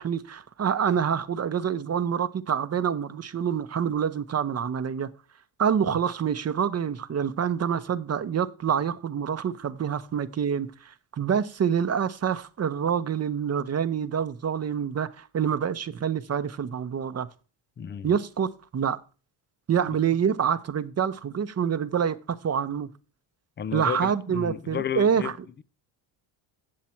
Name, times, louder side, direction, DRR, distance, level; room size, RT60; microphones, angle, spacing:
voice 1, 0.0-5.1 5.6-17.3 18.0-19.0 19.7-22.2 22.4-22.9 23.7-25.4, right 8 dB, 30° right, 0.7 m, -26 dB
voice 2, 17.8-18.1 23.6-25.6, left 9 dB, 25° left, 0.4 m, -33 dB
8.3 x 7.5 x 4.3 m
supercardioid pair, 85°, 49 cm